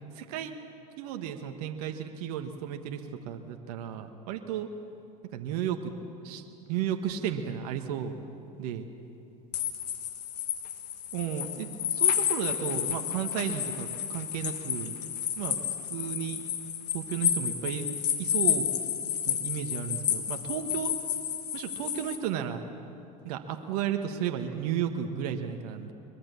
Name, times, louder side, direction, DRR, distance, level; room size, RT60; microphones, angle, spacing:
voice 1, 0.1-0.5 1.0-4.7 5.3-5.9 6.2-8.1 8.6-8.9 11.1-14.9 15.4-16.4 16.9-17.9 18.2-18.7 19.2-20.9 21.5-22.6 23.2-25.9, right 9 dB, 70° right, 5 dB, 1.5 m, -33 dB
sound 1, 9.5-22.2, left 9 dB, 85° left, 2.0 m, -31 dB
22.5 x 22.0 x 7.1 m, 2.9 s
hypercardioid pair, 85°, 20 cm